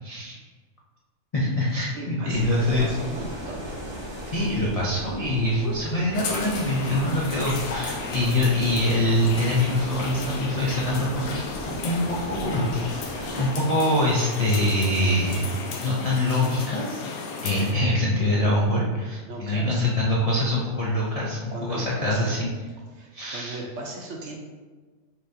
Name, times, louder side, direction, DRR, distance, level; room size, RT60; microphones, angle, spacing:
voice 1, 0.0-0.4 1.3-2.9 4.3-13.0 13.4-15.5 15.8-17.0 17.4-22.5 23.1-23.6, left 1 dB, 50° left, -5 dB, 0.4 m, -24 dB
voice 2, 1.9-3.6 19.3-19.9 21.5-22.3 22.9-24.3, right 2 dB, 60° right, 0 dB, 0.9 m, -37 dB
sound 1, 2.3-13.5, equal, 25° right, 0.8 m, -37 dB
sound 2, 6.1-17.7, left 4 dB, 85° left, 1.1 m, -34 dB
5.8 x 3.4 x 2.7 m, 1.4 s
omnidirectional pair, 1.5 m